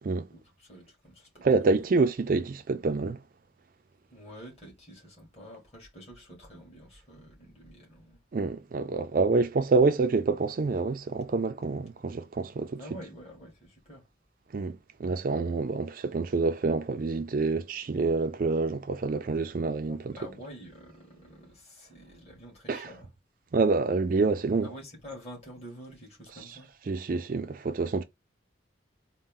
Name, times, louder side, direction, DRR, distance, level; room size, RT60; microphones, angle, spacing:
voice 1, 0.3-1.8 4.1-8.2 12.8-14.0 19.9-23.1 24.6-26.7, equal, 30° left, 2.0 m, -48 dB
voice 2, 1.4-3.2 8.3-12.8 14.5-20.2 22.7-22.9 23.5-24.7 26.9-28.0, right 3 dB, 45° right, 0.4 m, -27 dB
4.1 x 2.1 x 3.7 m
head